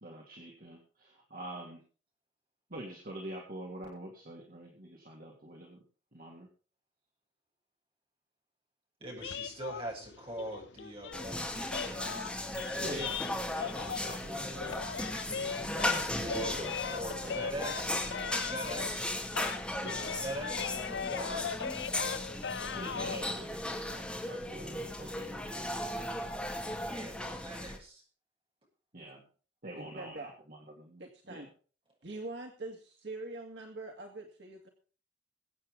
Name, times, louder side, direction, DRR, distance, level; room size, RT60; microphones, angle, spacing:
voice 1, 0.0-1.8 2.7-5.8 6.1-6.5 12.8-17.5 19.8-20.1 22.7-26.2 28.9-29.2 29.6-31.0 31.3-31.5, right 1 dB, 50° right, 0 dB, 2.8 m, -46 dB
voice 2, 9.0-12.4 16.1-16.6 16.9-19.2 20.0-21.6 26.8-28.0, right 1 dB, 30° right, 0 dB, 7.0 m, -42 dB
sound 1, 9.2-14.3 14.6-19.1 19.3-23.2, left 6 dB, 70° left, 0.5 m, -39 dB
sound 2, 11.1-27.8, left 1 dB, 5° left, 2.5 m, -36 dB
voice 3, 29.7-30.3 31.0-31.5 32.0-34.7, right 2 dB, 70° right, 2 dB, 2.2 m, -43 dB
22.5 x 8.8 x 3.7 m, 0.40 s
head